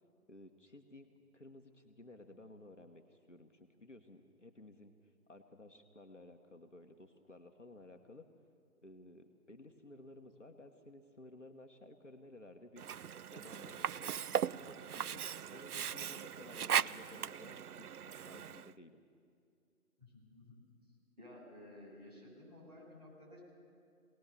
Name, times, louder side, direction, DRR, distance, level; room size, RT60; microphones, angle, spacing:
voice 1, 0.3-8.3 8.8-12.8 13.3-19.0, left 1 dB, 55° left, 4 dB, 1.2 m, -56 dB
Sink (filling or washing), 12.8-18.7, right 8 dB, 75° right, 0.5 m, -38 dB
voice 2, 20.0-20.7 21.2-23.4, left 1 dB, 25° right, -9 dB, 7.5 m, -55 dB
22.5 x 19.0 x 6.9 m, 2.3 s
figure-of-eight pair, 180°, 45 cm